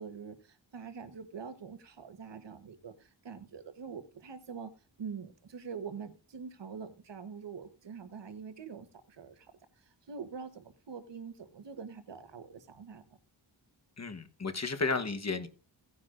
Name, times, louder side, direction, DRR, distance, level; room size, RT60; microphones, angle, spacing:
voice 1, 0.0-4.7 5.0-13.0, right 6 dB, 65° right, 1.2 m, -45 dB
voice 2, 14.0-15.5, left 3 dB, 35° left, 1.1 m, -33 dB
17.0 x 9.5 x 2.5 m
wide cardioid pair, 105°, 46 cm